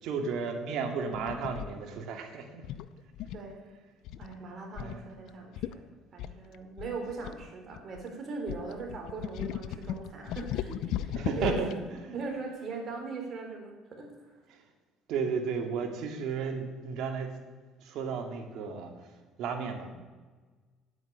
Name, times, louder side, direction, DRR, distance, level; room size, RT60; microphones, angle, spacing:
voice 1, 0.0-2.6 4.8-5.0 11.1-11.7 12.0-12.2 15.1-17.3 17.8-18.9 19.4-19.9, right 5 dB, 70° right, 4 dB, 2.4 m, -33 dB
sound 1, 1.1-1.7 2.6-3.5 4.1-4.3 4.8-5.0 5.3-5.4 5.6-5.8 6.2-8.0 8.5-11.8, left 11 dB, 75° left, 0.6 m, -36 dB
voice 2, 4.2-5.9 6.1-11.6 12.1-14.4, right 4 dB, 50° right, 2 dB, 3.7 m, -40 dB
9.9 x 9.4 x 8.8 m, 1.3 s
supercardioid pair, 85°, 0 cm